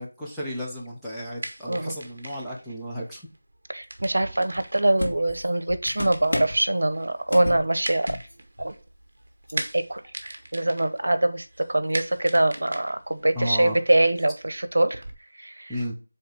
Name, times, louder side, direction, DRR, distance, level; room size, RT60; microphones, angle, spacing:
voice 1, 0.0-3.2 13.3-13.8 15.7-16.0, equal, ahead, 0.6 m, -33 dB
sound 1, 1.1-15.1, right 1 dB, 50° right, 1.1 m, -41 dB
voice 2, 3.7-8.2 8.6-8.7 9.5-15.0 15.4-15.7, right 1 dB, 80° right, 0.8 m, -24 dB
sound 2, 4.6-4.7 5.0-6.6 7.3-7.7 8.0-8.3 8.6-8.8 9.5-9.6, left 1 dB, 75° left, 2.0 m, -32 dB
7.9 x 3.4 x 3.5 m
figure-of-eight pair, 180°, 0 cm